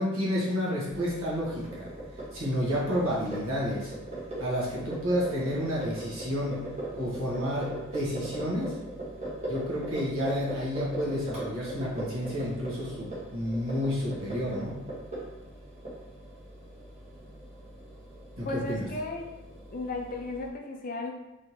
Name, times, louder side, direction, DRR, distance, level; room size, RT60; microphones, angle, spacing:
voice 1, 0.0-1.9 2.3-3.9 4.4-6.6 7.0-7.7 7.9-8.7 9.5-14.8 18.4-18.8, equal, 65° right, -6 dB, 1.5 m, -30 dB
sound 1, 0.9-20.5, right 1 dB, 30° right, 1.3 m, -40 dB
voice 2, 18.4-19.3 19.7-21.1, left 2 dB, 40° left, 2 dB, 0.5 m, -35 dB
3.7 x 3.3 x 2.9 m, 0.98 s
head